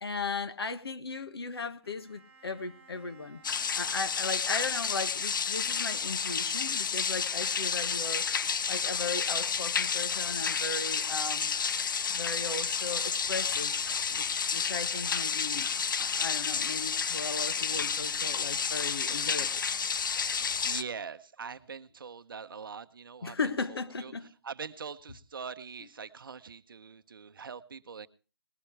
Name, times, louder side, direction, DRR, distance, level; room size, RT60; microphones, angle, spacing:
voice 1, 0.0-3.4 3.7-11.5 12.1-15.7 16.0-19.6 23.2-24.3, left 4 dB, 65° left, 1.5 m, -37 dB
Bowed string instrument, 1.8-5.5, right 5 dB, 5° right, 1.8 m, -59 dB
sound 1, 3.4-20.8, left 6 dB, 50° left, 0.6 m, -31 dB
voice 2, 17.6-17.9 18.4-18.7 20.3-23.4 23.7-24.1 24.4-28.1, right 6 dB, 55° right, 0.8 m, -43 dB
20.0 x 13.0 x 3.3 m
figure-of-eight pair, 155°, 14 cm